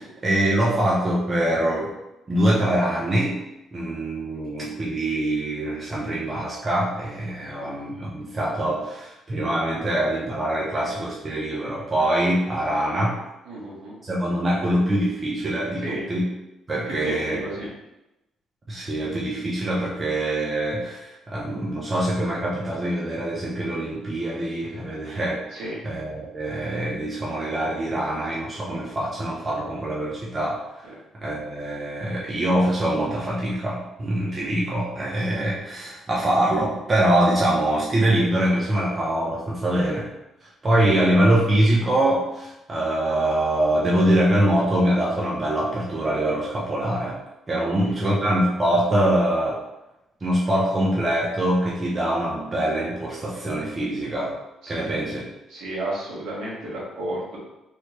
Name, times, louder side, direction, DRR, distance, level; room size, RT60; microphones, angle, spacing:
voice 1, 0.0-1.9 2.3-3.4 3.7-13.2 14.0-16.3 16.7-17.4 18.7-30.6 31.1-40.1 40.6-47.2 47.5-49.6 50.2-54.3 54.7-55.3, right 1 dB, 20° right, -5 dB, 0.5 m, -24 dB
voice 2, 7.4-7.7 13.4-13.9 15.8-16.0 16.9-17.7 25.5-25.7 30.9-31.0 47.6-48.2 54.6-54.8 55.5-57.4, right 1 dB, 70° right, -6 dB, 1.3 m, -32 dB
3.2 x 3.1 x 2.8 m, 0.93 s
cardioid pair, 180°, 0 cm